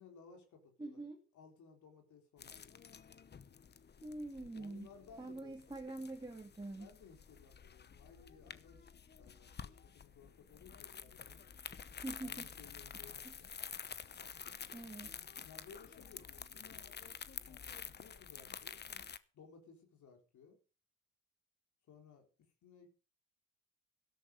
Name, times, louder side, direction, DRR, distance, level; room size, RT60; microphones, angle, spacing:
voice 1, 0.0-1.0 1.3-2.6 4.5-5.6 6.8-11.4 12.2-13.5 15.0-15.1 15.4-17.2 17.4-18.8 19.3-20.6 21.9-22.3 22.6-22.9, left 6 dB, 75° left, 4 dB, 3.9 m, -59 dB
voice 2, 0.8-1.2 4.0-4.9 5.2-6.9 12.0-12.5 13.2-13.3 14.7-15.1, right 2 dB, 15° right, 1 dB, 2.4 m, -45 dB
sound 1, 2.4-19.2, left 7 dB, 35° left, 0.9 m, -50 dB
13.0 x 12.5 x 5.3 m, 0.37 s
cardioid pair, 90°, 30 cm